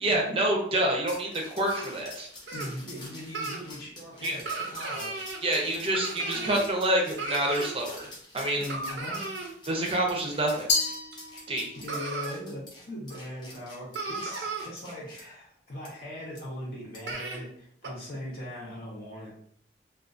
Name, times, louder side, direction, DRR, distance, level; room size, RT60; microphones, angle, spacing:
voice 1, 0.0-2.3 4.2-4.3 5.4-8.1 8.3-8.7 9.7-10.7 11.5-11.7, right 1 dB, 30° right, 0 dB, 0.6 m, -27 dB
sound 1, 1.1-15.2 15.8-15.9 16.4-16.5 16.9-17.1, left 2 dB, 25° left, 0.6 m, -47 dB
sound 2, 1.7-1.9 2.5-2.7 3.3-3.6 4.5-5.4 5.9-6.7 7.2-7.8 8.7-9.5 11.1-11.2 11.9-12.3 13.1-13.2 13.6-13.7 13.9-14.7 16.4-16.5 17.1-17.4 17.8-17.9, right 3 dB, 90° right, 0.6 m, -35 dB
voice 2, 2.5-5.1 5.7-5.8 6.2-6.5 8.5-9.2 11.8-19.3, left 1 dB, 55° left, -5 dB, 0.9 m, -40 dB
Glass, 10.7-11.9, left 4 dB, 75° left, 0.5 m, -29 dB
2.4 x 2.4 x 2.4 m, 0.65 s
head